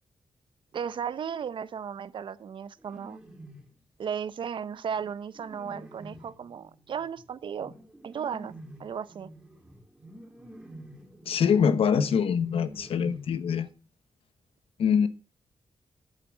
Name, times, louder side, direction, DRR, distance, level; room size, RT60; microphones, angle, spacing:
voice 1, 0.7-3.2 4.0-7.7 8.0-8.5 8.8-9.3, right 7 dB, 60° right, 0.7 m, -35 dB
sound 1, 2.8-3.7 4.5-13.7, right 1 dB, 10° right, 2.7 m, -48 dB
voice 2, 11.3-13.7 14.8-15.1, left 7 dB, 75° left, 1.2 m, -24 dB
11.0 x 8.3 x 5.4 m
wide cardioid pair, 155°, 10 cm